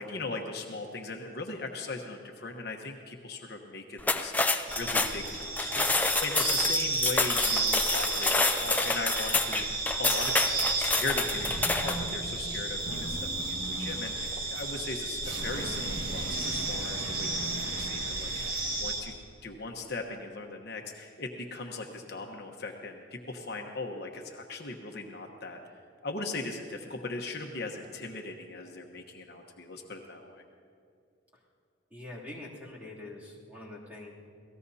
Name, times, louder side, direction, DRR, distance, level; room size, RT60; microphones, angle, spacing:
voice 1, 0.0-10.3 10.6-17.5 17.7-19.1 19.4-30.4, left 3 dB, 55° left, 2 dB, 1.1 m, -39 dB
sound 1, 4.0-12.1, left 3 dB, 10° left, 0.5 m, -28 dB
sound 2, 4.7-19.0, right 2 dB, 50° right, 1.6 m, -33 dB
sound 3, 11.5-18.9, right 1 dB, 75° right, 2.3 m, -41 dB
voice 2, 31.9-34.1, left 2 dB, 10° right, -6 dB, 2.8 m, -44 dB
27.5 x 18.0 x 2.8 m, 2.3 s
head